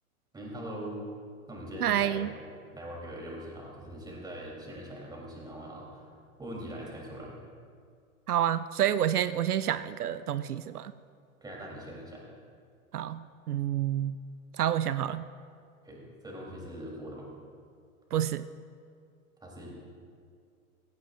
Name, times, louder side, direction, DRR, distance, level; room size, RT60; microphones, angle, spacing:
voice 1, 0.3-1.0 1.5-2.3 2.7-6.1 6.4-7.4 11.4-12.2 15.8-17.3 19.4-19.7, right 1 dB, 10° right, -3 dB, 3.5 m, -42 dB
voice 2, 1.8-2.3 8.3-10.9 12.9-14.2 14.5-15.3 18.1-18.5, right 10 dB, 85° right, 14 dB, 0.5 m, -28 dB
16.5 x 14.5 x 2.6 m, 2.3 s
figure-of-eight pair, 105°, 44 cm